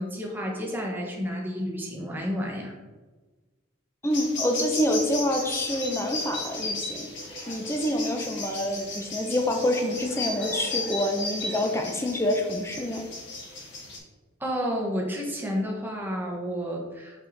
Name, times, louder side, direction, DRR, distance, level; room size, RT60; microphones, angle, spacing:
voice 1, 0.0-2.7 14.4-17.3, equal, 10° right, -1 dB, 1.0 m, -31 dB
voice 2, 4.0-7.1 7.5-13.0, left 1 dB, 15° left, 3 dB, 0.6 m, -27 dB
sound 1, 4.1-14.0, left 2 dB, 55° left, 1.2 m, -35 dB
5.3 x 4.7 x 4.0 m, 1.3 s
head